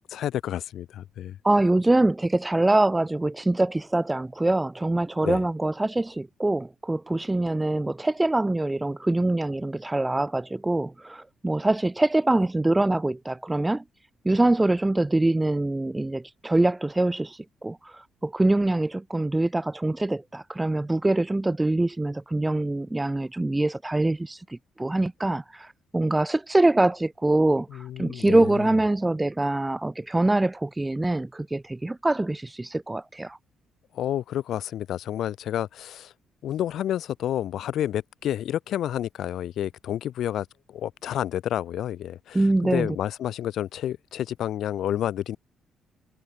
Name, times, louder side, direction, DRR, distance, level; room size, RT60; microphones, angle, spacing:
voice 1, 0.1-1.4 5.2-5.4 27.7-28.7 33.9-36.1 36.4-45.4, left 11 dB, 70° left, 0.4 m, -30 dB
voice 2, 1.4-13.8 14.2-33.4 42.3-43.0, right 2 dB, 10° right, 0.4 m, -24 dB
cardioid pair, 115°, 0 cm